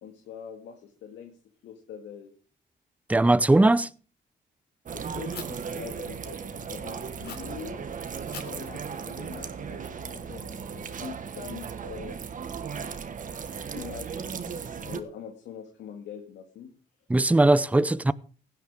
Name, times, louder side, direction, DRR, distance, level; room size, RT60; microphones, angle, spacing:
voice 1, 0.0-1.4 1.6-2.3 4.9-7.9 8.4-12.2 13.7-16.7 17.7-17.9, left 8 dB, 80° left, 2.1 m, -43 dB
voice 2, 3.1-3.9 17.1-18.1, right 2 dB, 10° right, 0.6 m, -19 dB
sound 1, 4.9-15.0, right 6 dB, 45° right, 1.6 m, -36 dB
Fire, 5.3-5.4 7.2-7.4 8.3-10.3, left 7 dB, 65° left, 3.8 m, -46 dB
16.5 x 11.0 x 3.7 m
cardioid pair, 85°, 18 cm